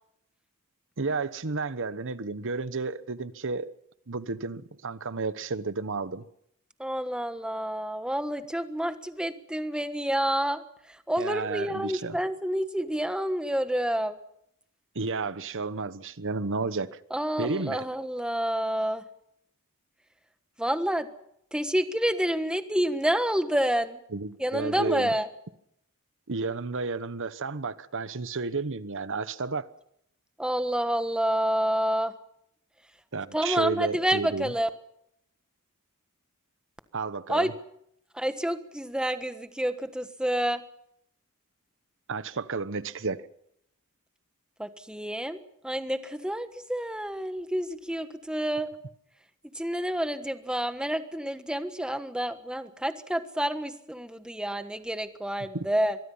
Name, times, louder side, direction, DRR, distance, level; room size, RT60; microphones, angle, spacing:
voice 1, 1.0-3.7 4.1-6.2 11.2-12.2 14.9-17.0 17.4-17.8 24.1-25.1 26.3-29.7 33.1-34.5 36.9-37.5 42.1-43.2 55.5-55.6, right 4 dB, 60° right, 1.1 m, -32 dB
voice 2, 6.8-14.2 17.1-19.0 20.6-21.1 21.5-24.0 24.4-25.3 30.4-32.1 33.3-34.7 37.3-37.5 38.1-40.6 44.6-48.7 49.5-56.0, equal, 5° right, 1.4 m, -29 dB
24.5 x 22.0 x 5.6 m
head